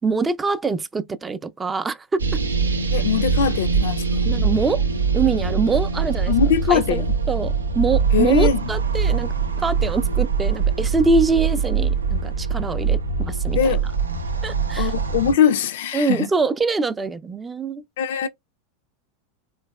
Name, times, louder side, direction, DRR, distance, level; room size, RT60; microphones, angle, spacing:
voice 1, 0.0-2.4 4.2-4.8 5.1-6.3 6.7-13.7 14.4-14.9 15.9-17.8, right 4 dB, 15° right, 0.4 m, -24 dB
sound 1, 2.2-15.3, right 5 dB, 90° right, 0.5 m, -23 dB
voice 2, 2.9-4.3 6.3-7.1 8.1-8.6 13.5-13.9 14.8-16.3 18.0-18.3, left 8 dB, 70° left, 0.4 m, -21 dB
3.4 x 3.1 x 2.2 m
hypercardioid pair, 90°, 0 cm